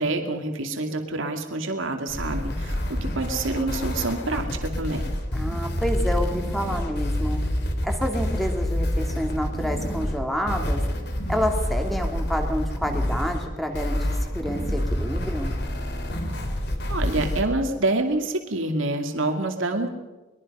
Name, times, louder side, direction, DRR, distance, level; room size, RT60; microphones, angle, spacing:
voice 1, 0.0-5.1 16.9-19.9, right 2 dB, 85° right, 4 dB, 2.4 m, -27 dB
sound 1, 2.1-17.4, left 1 dB, 55° left, 3.3 m, -27 dB
voice 2, 5.3-7.4 7.8-10.8 11.3-14.1 14.3-15.5, equal, ahead, 3 dB, 2.6 m, -28 dB
23.5 x 22.0 x 5.5 m, 1.2 s
head